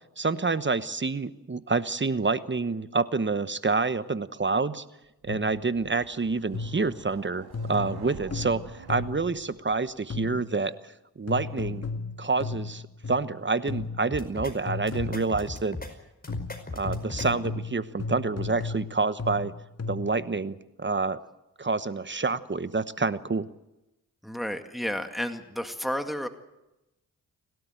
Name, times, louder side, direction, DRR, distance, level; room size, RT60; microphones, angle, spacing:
voice 1, 0.2-4.8 5.2-11.9 12.2-12.8 13.1-15.8 16.7-19.5 19.9-21.2 21.6-23.5, right 4 dB, 30° right, 14 dB, 1.1 m, -28 dB
sound 1, 5.2-10.2, right 6 dB, 80° right, 2.3 m, -48 dB
sound 2, 5.3-5.7 6.5-7.0 7.5-9.3 10.1-10.6 11.3-13.4 13.7-14.2 14.7-15.4 16.3-20.3, left 4 dB, 40° left, 2.1 m, -35 dB
sound 3, 14.1-14.5 14.9-15.9 16.2-17.3, left 2 dB, 25° left, 5.1 m, -37 dB
voice 2, 24.2-26.3, equal, ahead, 6 dB, 2.0 m, -31 dB
29.5 x 13.0 x 9.0 m, 0.95 s
cardioid pair, 50°, 37 cm